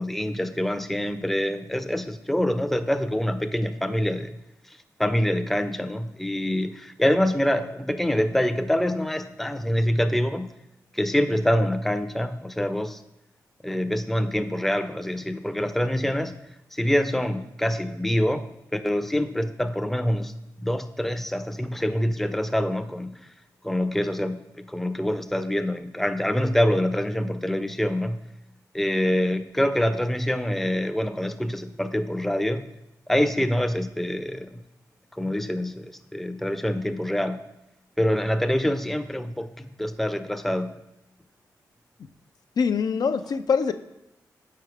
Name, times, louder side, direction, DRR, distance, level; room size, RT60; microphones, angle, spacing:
voice 1, 0.0-4.4 5.0-10.5 10.9-13.0 13.6-16.3 16.7-20.3 20.6-23.2 23.6-28.2 28.7-32.6 33.1-34.6 35.2-37.5 38.0-40.8, left 1 dB, 5° left, 9 dB, 0.5 m, -25 dB
voice 2, 42.6-43.7, left 6 dB, 60° left, 9 dB, 0.4 m, -23 dB
4.7 x 4.5 x 4.8 m, 0.89 s
supercardioid pair, 40°, 7 cm